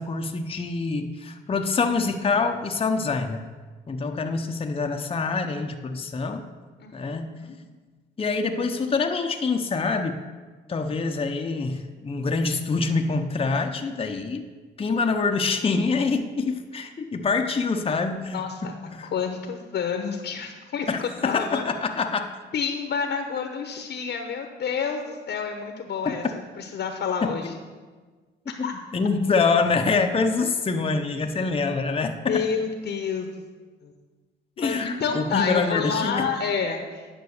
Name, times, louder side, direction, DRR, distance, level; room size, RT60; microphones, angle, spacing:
voice 1, 0.0-3.4 3.9-6.4 6.9-7.3 8.2-10.2 10.7-14.5 14.8-18.4 18.9-19.1 20.9-22.3 26.0-26.1 27.2-27.3 28.6-32.4 34.6-36.3, left 4 dB, 30° left, 4 dB, 0.8 m, -25 dB
voice 2, 4.0-4.7 6.8-7.6 18.3-18.7 19.1-21.6 22.5-26.2 26.6-27.6 28.6-28.7 32.2-33.4 33.8-33.9 34.6-37.1, left 6 dB, 60° left, 4 dB, 1.0 m, -29 dB
9.4 x 6.3 x 6.6 m, 1.4 s
cardioid pair, 90°, 20 cm